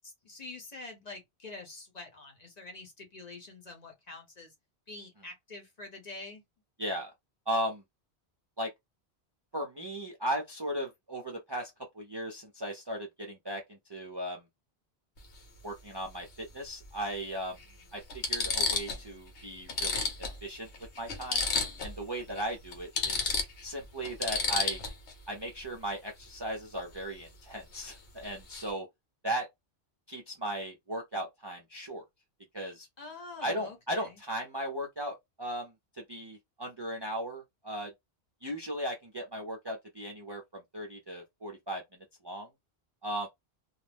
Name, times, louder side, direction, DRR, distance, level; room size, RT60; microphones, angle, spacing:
voice 1, 0.0-4.5 4.9-6.4 33.0-34.2, left 3 dB, 40° left, 0.8 m, -46 dB
voice 2, 6.8-7.1 7.5-7.8 8.6-8.7 9.5-14.4 15.6-17.6 17.9-20.1 20.4-20.7 21.0-21.5 21.8-23.3 23.6-24.8 25.3-28.9 29.2-29.5 30.1-32.0 32.5-32.9 33.4-35.7 36.1-37.9 38.4-41.8 42.2-42.5 43.0-43.3, right 1 dB, 35° right, 0.5 m, -37 dB
sound 1, 15.2-15.4 16.8-16.9 17.6-17.7 18.1-19.0 19.4-19.5 19.7-22.0 22.3-22.4 22.7-25.1 27.7-27.9 28.2-28.7, left 4 dB, 80° left, 1.1 m, -32 dB
2.4 x 2.0 x 3.3 m
omnidirectional pair, 1.1 m